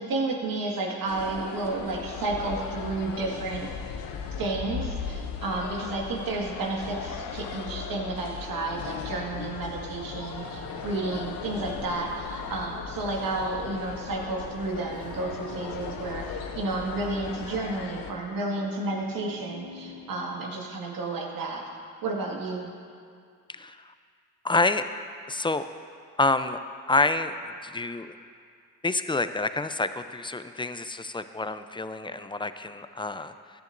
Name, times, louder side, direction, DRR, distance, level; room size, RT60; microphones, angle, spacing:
voice 1, 0.0-3.7 4.4-21.6 22.0-22.7, right 2 dB, 70° right, -1 dB, 1.9 m, -31 dB
sound 1, 1.1-18.1, left 6 dB, 75° left, 0.8 m, -37 dB
sound 2, 10.4-20.4, right 2 dB, 90° right, 0.9 m, -48 dB
voice 2, 24.4-24.8 25.3-25.7 26.2-26.6 26.9-27.4 27.6-28.1 28.8-33.3, left 3 dB, 15° left, 10 dB, 0.5 m, -27 dB
15.5 x 10.5 x 2.6 m, 2.2 s
supercardioid pair, 55°, 35 cm